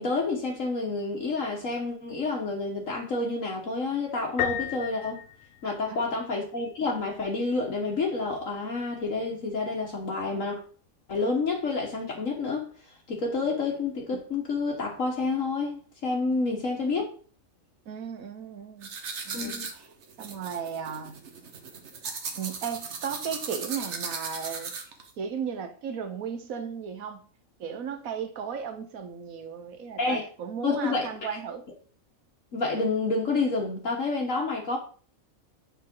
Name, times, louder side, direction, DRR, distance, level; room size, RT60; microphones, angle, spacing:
voice 1, 0.0-5.2 5.6-10.6 11.1-12.7 13.1-17.0 19.3-19.7 30.0-30.2 30.6-31.1 32.5-34.8, left 3 dB, 65° left, 1.7 m, -29 dB
Piano, 4.4-6.2, left 10 dB, 85° left, 1.2 m, -33 dB
voice 2, 5.6-6.0 17.9-19.0 19.2-19.9 20.2-21.2 22.3-24.7 25.2-27.3 27.6-31.6, right 7 dB, 80° right, 1.4 m, -35 dB
sound 1, 18.8-25.1, right 5 dB, 55° right, 1.2 m, -37 dB
6.7 x 5.6 x 3.8 m
omnidirectional pair, 1.4 m